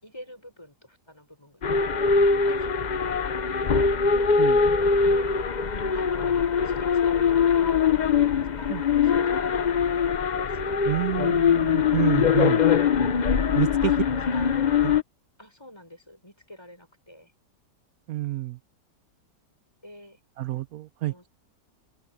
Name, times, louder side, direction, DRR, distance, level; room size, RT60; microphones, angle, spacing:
voice 1, 0.0-3.8 4.6-5.5 5.9-7.9 8.6-11.1 13.6-14.7 15.4-17.3 19.8-20.2 21.0-21.3, left 1 dB, 15° left, 6.5 m, -48 dB
sound 1, 1.6-15.0, left 6 dB, 65° left, 0.4 m, -22 dB
voice 2, 10.9-12.6 13.5-13.9 14.8-14.9 18.1-18.6 20.4-21.1, right 15 dB, 65° right, 1.0 m, -28 dB
open air
omnidirectional pair, 1.9 m